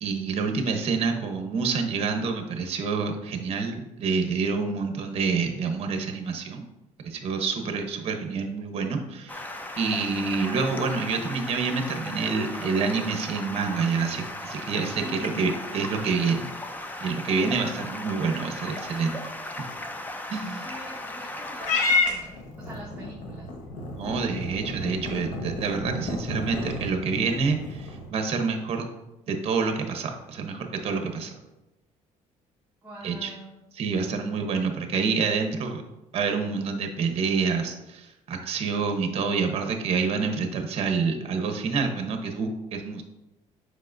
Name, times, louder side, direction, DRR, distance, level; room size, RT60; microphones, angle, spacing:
voice 1, 0.0-6.6 7.0-9.5 9.8-16.5 17.0-19.2 20.3-20.7 24.0-28.9 29.3-31.3 33.0-33.3 33.8-35.8 36.1-43.0, right 5 dB, 50° right, 5 dB, 0.9 m, -27 dB
Stream, 9.3-22.0, left 1 dB, 15° left, 0.5 m, -37 dB
voice 2, 14.9-15.6 20.6-23.5 32.8-33.6, equal, 15° right, -7 dB, 1.3 m, -43 dB
Purr / Meow, 21.6-28.1, left 3 dB, 80° left, 1.2 m, -30 dB
8.2 x 5.0 x 2.6 m, 0.99 s
cardioid pair, 135°, 13 cm